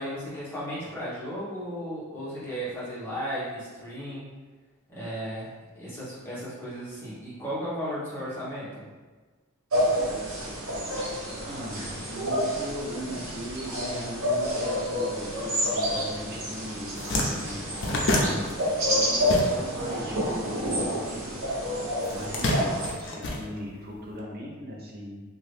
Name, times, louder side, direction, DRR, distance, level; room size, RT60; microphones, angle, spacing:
voice 1, 0.0-4.2 4.9-5.5 5.7-8.9, equal, 10° left, -10 dB, 1.1 m, -35 dB
sound 1, 9.7-22.9, equal, 80° right, 1.0 m, -29 dB
voice 2, 10.7-18.6 18.9-21.3 22.1-25.2, equal, 45° right, -3 dB, 0.7 m, -39 dB
sound 2, 16.3-16.5 16.8-19.9 20.2-21.4 22.0-24.0, left 1 dB, 60° left, 0.5 m, -28 dB
2.8 x 2.5 x 3.3 m, 1.4 s
head